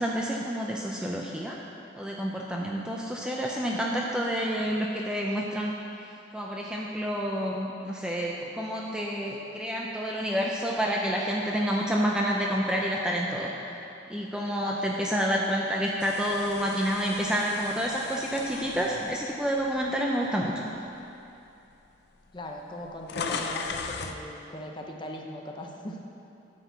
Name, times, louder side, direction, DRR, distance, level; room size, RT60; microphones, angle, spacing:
voice 1, 0.0-1.6 1.9-5.7 6.3-13.5 14.1-20.6, equal, 5° right, -2 dB, 0.5 m, -29 dB
sound 1, 16.0-20.2 20.8-21.0 21.9-22.0 22.2-24.2, left 5 dB, 60° left, 0.5 m, -38 dB
voice 2, 22.3-26.0, left 1 dB, 25° left, 1 dB, 0.8 m, -39 dB
9.5 x 4.7 x 6.8 m, 2.7 s
head